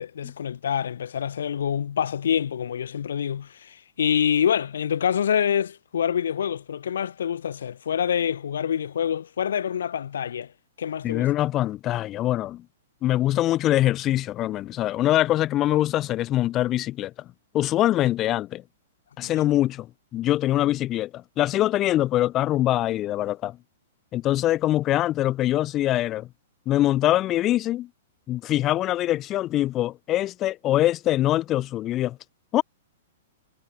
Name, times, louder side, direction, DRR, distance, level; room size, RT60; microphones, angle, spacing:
voice 1, 0.0-10.5 10.8-11.3 19.2-19.5, left 8 dB, 85° left, 5.9 m, -26 dB
voice 2, 11.0-12.6 13.0-17.1 17.5-18.6 19.2-19.9 20.1-23.6 24.1-26.3 26.7-27.9 28.3-32.2 32.5-32.6, left 14 dB, 25° left, 4.9 m, -23 dB
hypercardioid pair, 145°, 0 cm